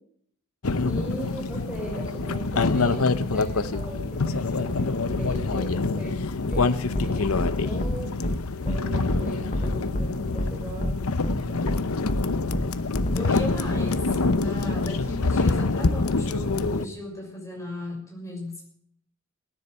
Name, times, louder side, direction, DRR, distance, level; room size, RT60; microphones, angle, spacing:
sound 1, 0.6-16.8, left 3 dB, 80° left, 0.8 m, -26 dB
voice 1, 0.8-6.1 6.5-8.3 8.6-10.9 11.3-11.6, right 1 dB, 5° right, -4 dB, 4.0 m, -38 dB
sound 2, 6.5-6.6 6.9-7.1 7.4-7.5 7.8-7.9 8.2-8.4 8.7-8.8 9.1-9.2 9.5-10.1 10.4-10.5 10.8-10.9 11.2-11.4 11.7-11.8 12.1-12.2 12.5-12.6 12.9-13.2, left 1 dB, 35° left, 1.4 m, -27 dB
voice 2, 13.1-18.7, left 1 dB, 15° left, -1 dB, 6.5 m, -35 dB
18.0 x 10.0 x 7.8 m, 0.68 s
head